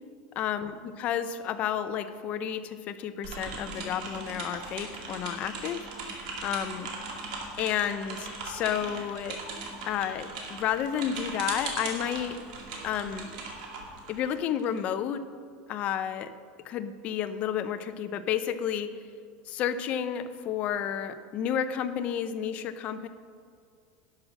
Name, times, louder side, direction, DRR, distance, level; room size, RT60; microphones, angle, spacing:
voice 1, 0.4-5.9 6.4-6.9 7.6-9.4 9.9-12.4 12.8-13.3 14.1-15.2 15.7-16.3 16.6-18.9 19.5-23.1, left 9 dB, 30° left, 10 dB, 0.5 m, -31 dB
sound 1, 3.2-14.8, right 3 dB, 75° right, 2.3 m, -39 dB
11.5 x 6.1 x 6.4 m, 2.2 s
supercardioid pair, 170°, 4 cm